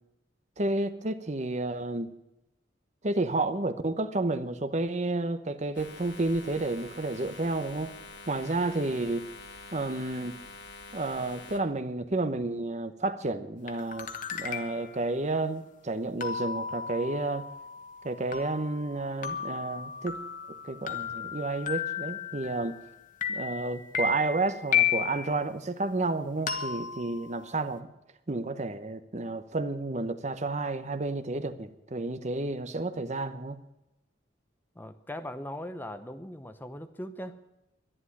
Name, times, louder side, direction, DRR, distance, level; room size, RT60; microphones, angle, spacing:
voice 1, 0.6-2.1 3.0-7.9 8.3-9.3 9.7-10.4 10.9-17.4 18.0-20.2 20.6-22.7 23.3-27.9 28.3-33.6, right 2 dB, 40° right, 11 dB, 0.9 m, -31 dB
sound 1, 5.7-11.6, left 3 dB, 65° left, 1.6 m, -46 dB
sound 2, 13.7-15.0 16.2-22.9 23.2-25.4 26.5-27.7, left 8 dB, 45° left, 1.3 m, -34 dB
voice 2, 34.8-37.4, left 1 dB, 10° left, 10 dB, 0.7 m, -39 dB
11.5 x 11.0 x 9.8 m, 0.91 s
head